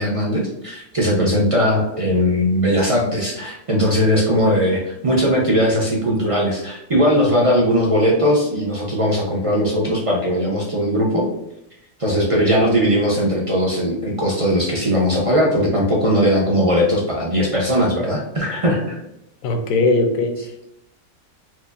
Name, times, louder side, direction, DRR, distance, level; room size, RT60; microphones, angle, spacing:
voice 1, 0.0-11.3 12.0-19.0, equal, 35° right, -3 dB, 0.5 m, -19 dB
voice 2, 19.4-20.7, left 2 dB, 85° left, 6 dB, 1.0 m, -20 dB
4.4 x 2.5 x 2.4 m, 0.83 s
omnidirectional pair, 1.4 m